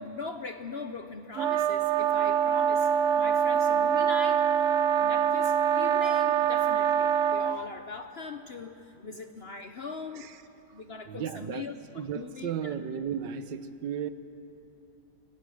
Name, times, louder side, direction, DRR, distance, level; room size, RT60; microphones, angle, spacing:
voice 1, 0.0-2.9 3.2-4.4 5.0-8.7 9.0-10.3 10.7-12.7, left 4 dB, 50° left, 7 dB, 0.7 m, -41 dB
sound 1, 1.4-7.6, right 8 dB, 60° right, 0.8 m, -24 dB
voice 2, 11.1-14.1, right 8 dB, 85° right, 12 dB, 1.5 m, -35 dB
25.0 x 18.5 x 6.3 m, 2.9 s
omnidirectional pair, 1.9 m